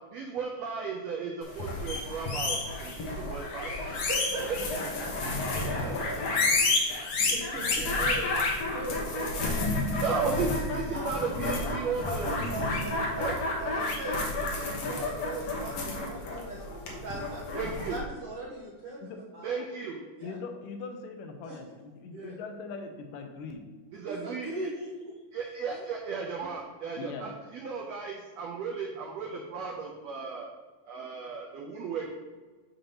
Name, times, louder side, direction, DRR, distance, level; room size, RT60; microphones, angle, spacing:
voice 1, 0.1-3.7 4.4-4.6 5.8-6.0 10.0-12.4 13.2-13.4 17.5-18.0 19.4-20.0 23.9-24.7 25.3-30.5 30.9-32.1, right 5 dB, 85° right, -1 dB, 1.5 m, -35 dB
sound 1, 1.5-18.0, left 2 dB, 65° left, 1.8 m, -30 dB
voice 2, 3.6-4.4 5.4-5.5 5.8-6.6 7.2-8.3 8.6-9.7 10.9-11.1 11.4-11.5 11.8-13.3 13.6-14.3 14.9-17.4 17.9-19.5 20.2-20.4 21.4-21.6 22.1-22.3 24.1-24.9 25.7-25.8, right 1 dB, 65° right, -5 dB, 1.5 m, -39 dB
voice 3, 20.2-23.6 27.0-27.3, left 4 dB, 85° left, 4 dB, 2.4 m, -41 dB
8.7 x 2.9 x 5.5 m, 1.4 s
omnidirectional pair, 3.8 m